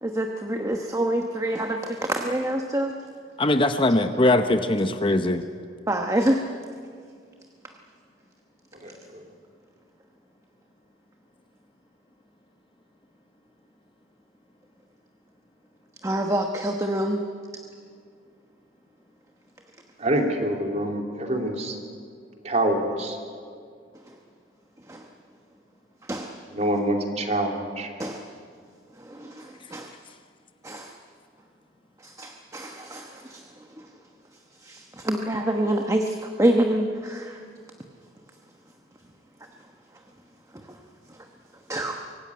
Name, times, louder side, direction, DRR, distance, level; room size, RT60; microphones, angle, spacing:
voice 1, 0.0-2.9 5.9-6.4 16.0-17.2 24.9-25.0 26.1-26.4 28.0-28.3 29.0-29.9 30.6-30.9 32.0-33.4 34.6-37.4 41.7-42.0, right 1 dB, 15° right, 3 dB, 1.1 m, -26 dB
voice 2, 3.4-5.4, left 2 dB, 25° left, 8 dB, 0.8 m, -21 dB
voice 3, 20.0-21.7 22.4-23.1 26.5-27.9, right 1 dB, 35° right, 2 dB, 2.7 m, -25 dB
24.0 x 16.5 x 9.6 m, 2.2 s
head